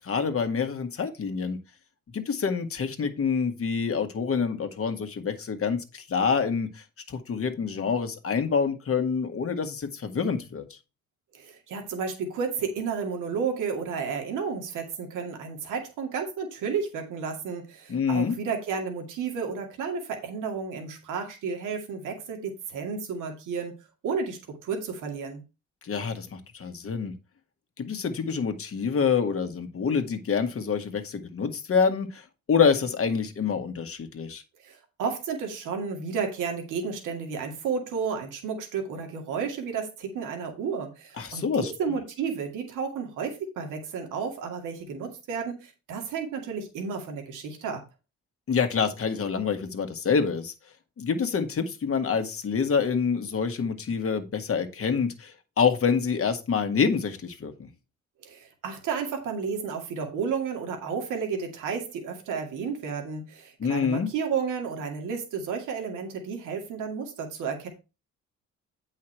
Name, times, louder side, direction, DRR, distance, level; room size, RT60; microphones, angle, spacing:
voice 1, 0.0-1.6 2.1-10.8 17.9-18.3 25.8-27.1 27.8-34.4 41.2-41.7 48.5-50.5 51.0-57.5 63.6-64.1, left 6 dB, 50° left, 7 dB, 1.7 m, -27 dB
voice 2, 11.3-23.8 24.0-25.4 34.6-47.8 58.2-67.7, right 6 dB, 90° right, 3 dB, 2.4 m, -32 dB
8.6 x 5.7 x 4.5 m, 0.29 s
cardioid pair, 90°, 30 cm